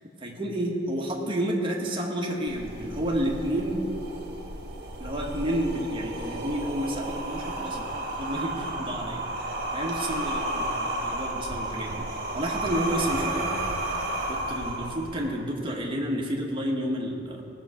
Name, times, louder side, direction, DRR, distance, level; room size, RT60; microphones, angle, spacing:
voice 1, 0.2-3.9 5.0-7.9 8.2-9.3 9.7-13.5 14.3-17.4, right 1 dB, 25° right, -1 dB, 1.4 m, -30 dB
sound 1, 2.5-15.5, right 1 dB, 45° right, 1.4 m, -32 dB
17.5 x 7.0 x 5.0 m, 2.5 s
head